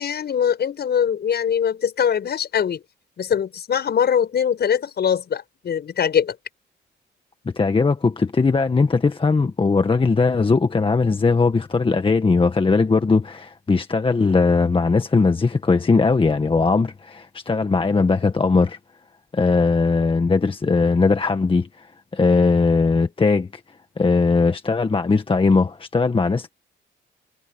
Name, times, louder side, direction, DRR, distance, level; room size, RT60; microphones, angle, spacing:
voice 1, 0.0-2.8 3.2-6.3, left 8 dB, 55° left, 6.6 m, -22 dB
voice 2, 7.5-18.8 19.3-21.9 22.1-23.6 24.0-26.5, left 4 dB, 25° left, 1.7 m, -19 dB
cardioid pair, 90°, 20 cm